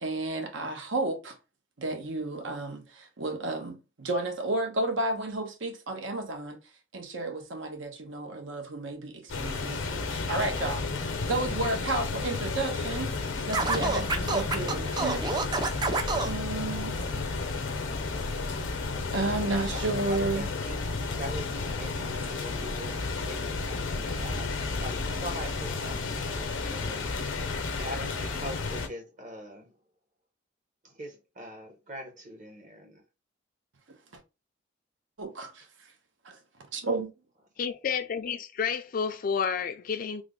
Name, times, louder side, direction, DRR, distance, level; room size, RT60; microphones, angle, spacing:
voice 1, 0.0-1.4 1.8-6.6 6.9-13.1 13.5-15.7 16.2-17.4 19.1-20.5 35.2-35.7 36.2-36.4 36.7-37.1, right 2 dB, 75° right, 0.8 m, -32 dB
sound 1, 9.3-28.9, left 3 dB, 90° left, 0.7 m, -32 dB
Scratching (performance technique), 13.5-16.3, right 3 dB, 20° right, 0.4 m, -28 dB
voice 2, 20.1-20.9 21.2-24.5 24.8-27.1 27.8-29.7 30.8-33.0, equal, 40° right, 1.0 m, -42 dB
voice 3, 37.6-40.2, left 6 dB, 45° left, 0.3 m, -30 dB
3.2 x 2.1 x 3.7 m
head